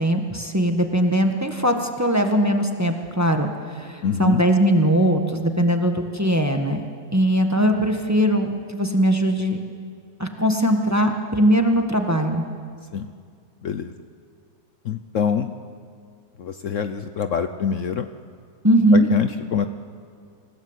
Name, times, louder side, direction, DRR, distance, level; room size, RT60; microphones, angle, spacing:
voice 1, 0.0-6.8 7.1-9.6 10.2-12.4 18.6-19.1, equal, 10° right, 4 dB, 1.4 m, -20 dB
voice 2, 4.0-4.4 12.9-13.1 13.6-13.9 14.8-15.5 16.4-18.1 18.9-19.7, left 7 dB, 60° left, 9 dB, 1.0 m, -25 dB
27.5 x 17.0 x 8.1 m, 2.2 s
omnidirectional pair, 1.7 m